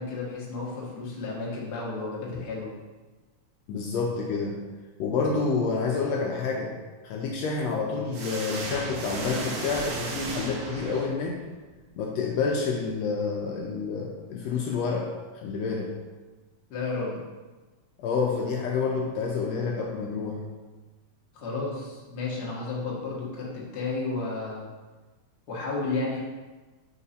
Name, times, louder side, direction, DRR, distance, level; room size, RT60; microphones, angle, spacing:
voice 1, 0.0-2.7 16.7-17.2 21.3-24.7 25.5-26.2, left 3 dB, 55° left, -5 dB, 1.1 m, -32 dB
voice 2, 3.7-4.6 5.0-6.7 7.0-11.4 12.0-15.1 15.4-15.9 18.0-20.4, left 4 dB, 85° left, -1 dB, 1.5 m, -28 dB
sound 1, 8.1-11.5, right 3 dB, 85° right, 1.2 m, -35 dB
4.6 x 4.2 x 4.9 m, 1.3 s
omnidirectional pair, 3.6 m